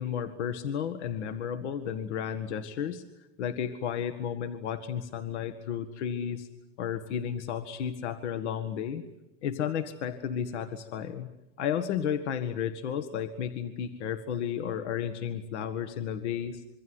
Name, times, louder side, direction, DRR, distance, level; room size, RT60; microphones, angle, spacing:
voice 1, 0.0-3.0 3.4-6.5 6.8-9.0 9.4-11.3 11.6-16.6, left 8 dB, 70° left, 9 dB, 1.8 m, -33 dB
26.0 x 24.0 x 8.0 m, 0.90 s
supercardioid pair, 165°, 36 cm